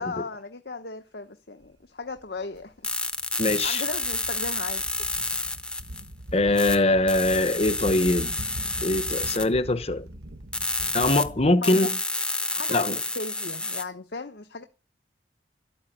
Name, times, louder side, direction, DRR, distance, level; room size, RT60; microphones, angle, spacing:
voice 1, 0.0-2.9 3.6-4.8 11.6-11.9 12.5-14.6, left 3 dB, 60° left, 1.0 m, -36 dB
sound 1, 1.6-1.7 2.1-11.5, right 1 dB, 75° right, 1.2 m, -41 dB
sound 2, 2.8-6.1 6.6-6.8 7.1-9.5 10.5-11.2 11.6-13.8, left 2 dB, 5° left, 0.8 m, -29 dB
voice 2, 3.4-3.8 6.3-8.3 8.8-10.1 10.9-11.9 12.7-13.0, left 2 dB, 35° left, 1.0 m, -22 dB
12.5 x 8.9 x 9.2 m
head